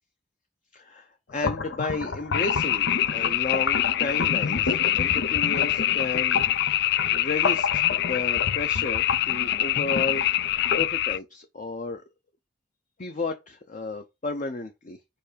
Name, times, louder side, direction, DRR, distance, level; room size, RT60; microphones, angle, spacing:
voice 1, 0.7-6.7 7.0-10.4 10.8-12.0 13.0-15.0, left 3 dB, 45° left, 0.7 m, -33 dB
sound 1, 1.3-10.9, left 4 dB, 80° left, 0.7 m, -31 dB
sound 2, 2.3-11.2, left 13 dB, 60° left, 0.3 m, -25 dB
5.2 x 4.6 x 5.0 m
head